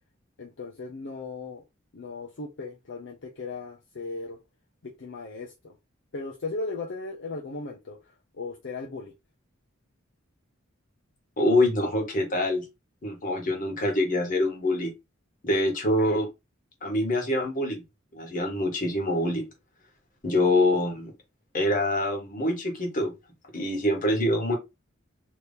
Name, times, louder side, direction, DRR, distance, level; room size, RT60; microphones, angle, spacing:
voice 1, 0.4-1.6 1.9-4.4 4.8-5.8 6.1-8.0 8.3-9.1, left 3 dB, 60° left, 0.6 m, -37 dB
voice 2, 11.4-12.6 13.0-14.9 15.4-16.3 16.8-17.8 18.1-19.5 20.2-21.1 21.5-23.1 23.5-24.5, left 1 dB, 40° left, 1.2 m, -25 dB
3.0 x 2.7 x 3.4 m
head